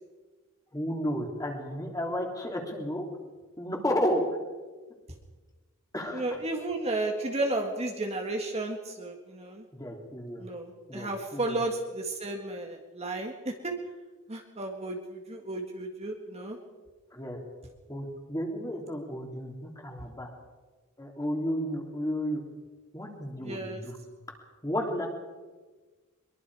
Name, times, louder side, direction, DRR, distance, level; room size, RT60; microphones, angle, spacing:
voice 1, 0.7-3.1 3.6-4.2 5.9-6.4 9.7-10.4 10.9-11.6 17.1-17.4 17.9-20.3 21.0-22.4 22.9-24.0 24.6-25.1, equal, 15° left, 1 dB, 3.3 m, -32 dB
voice 2, 6.1-9.6 10.4-13.7 14.3-16.6 23.4-23.8, right 2 dB, 30° right, 2 dB, 1.8 m, -33 dB
23.0 x 23.0 x 4.9 m, 1.3 s
head